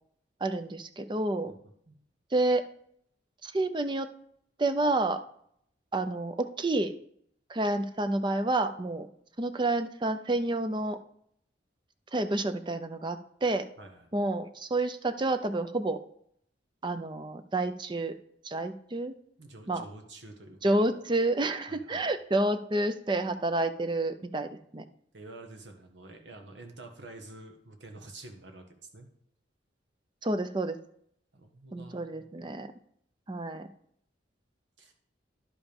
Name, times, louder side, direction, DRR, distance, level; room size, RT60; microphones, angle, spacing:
voice 1, 0.4-1.5 2.3-2.6 3.4-4.1 4.6-5.2 5.9-6.9 7.5-9.1 9.4-11.0 12.1-13.7 14.1-16.0 16.8-18.2 18.4-19.2 19.7-19.8 20.6-24.8 30.2-30.8 31.7-32.7 33.3-33.7, right 2 dB, 25° right, 10 dB, 0.6 m, -29 dB
voice 2, 13.8-14.1 19.4-20.9 21.7-22.1 25.1-28.7 28.9-29.1 31.3-32.2 34.8-34.9, right 2 dB, 80° right, 4 dB, 1.5 m, -48 dB
11.0 x 5.1 x 5.3 m, 0.69 s
head